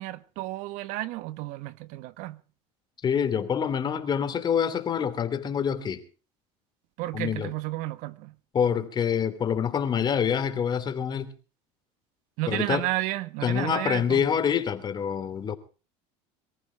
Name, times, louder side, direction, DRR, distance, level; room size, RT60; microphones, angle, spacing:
voice 1, 0.0-2.4 7.0-8.3 12.4-14.3, right 17 dB, 70° right, 1.4 m, -32 dB
voice 2, 3.0-6.0 7.1-7.5 8.5-11.3 12.5-12.9 13.4-15.6, left 7 dB, 30° left, 2.8 m, -26 dB
24.0 x 14.5 x 3.4 m
supercardioid pair, 125°, 14 cm